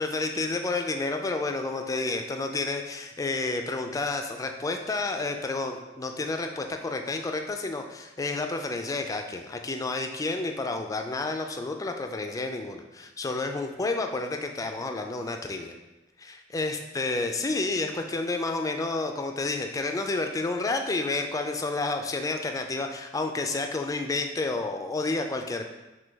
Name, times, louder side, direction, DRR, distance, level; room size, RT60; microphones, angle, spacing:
voice 1, 0.0-15.7 16.2-25.7, left 3 dB, 20° left, 5 dB, 0.3 m, -30 dB
6.1 x 2.2 x 3.4 m, 1.1 s
head